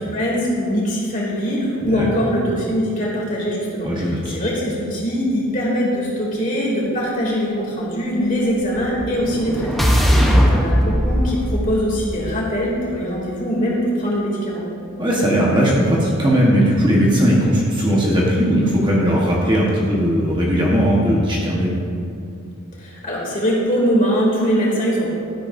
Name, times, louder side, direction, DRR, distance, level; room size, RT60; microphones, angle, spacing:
voice 1, 0.1-14.6 22.8-25.1, equal, 35° left, -4 dB, 2.6 m, -22 dB
voice 2, 3.8-4.4 10.1-10.3 15.0-21.8, equal, 20° right, -4 dB, 1.2 m, -18 dB
sound 1, 8.6-12.8, equal, ahead, 0.8 m, -19 dB
12.5 x 11.0 x 2.6 m, 2.4 s
head